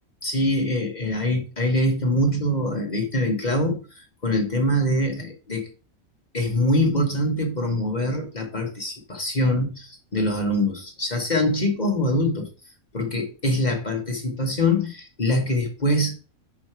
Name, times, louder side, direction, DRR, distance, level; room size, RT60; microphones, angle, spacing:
voice 1, 0.2-5.7 6.3-12.5 12.9-16.1, left 1 dB, 30° left, 2 dB, 1.3 m, -24 dB
6.2 x 4.9 x 4.4 m, 0.35 s
omnidirectional pair, 1.5 m